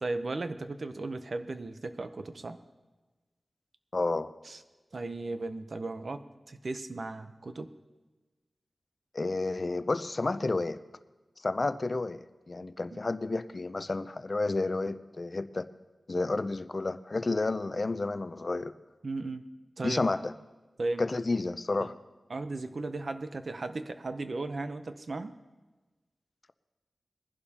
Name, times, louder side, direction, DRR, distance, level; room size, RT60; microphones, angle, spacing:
voice 1, 0.0-2.6 4.4-4.6 4.9-7.7 12.9-13.0 19.0-19.4 19.8-20.0 20.8-21.1 21.8-22.0 22.3-25.3, right 2 dB, 55° right, 10 dB, 0.7 m, -36 dB
voice 2, 3.9-4.3 9.1-10.8 11.4-15.7 16.1-18.7 19.8-20.3 21.0-21.9, left 3 dB, 40° left, 13 dB, 0.5 m, -31 dB
21.0 x 11.0 x 2.9 m, 1.2 s
wide cardioid pair, 105°, 0 cm